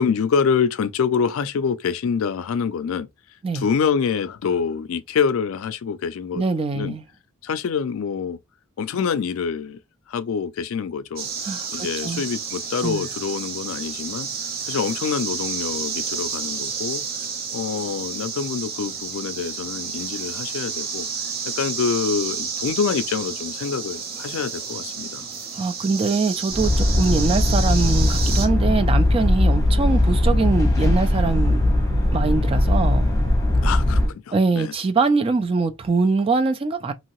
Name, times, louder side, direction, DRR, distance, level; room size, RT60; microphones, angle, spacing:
voice 1, 0.0-3.1 3.5-6.4 6.7-6.9 7.4-8.4 8.8-9.8 10.1-11.3 11.7-14.3 14.7-17.0 17.5-21.1 21.4-25.3 33.6-34.7, left 6 dB, 70° left, 0.4 m, -26 dB
voice 2, 6.3-7.0 11.4-12.2 12.8-13.1 25.5-31.6 32.1-33.1 34.3-36.9, right 4 dB, 25° right, 0.3 m, -23 dB
sound 1, 11.2-28.5, right 6 dB, 45° right, 0.8 m, -30 dB
sound 2, 26.5-34.1, left 1 dB, 15° left, 1.1 m, -19 dB
2.9 x 2.7 x 3.0 m
head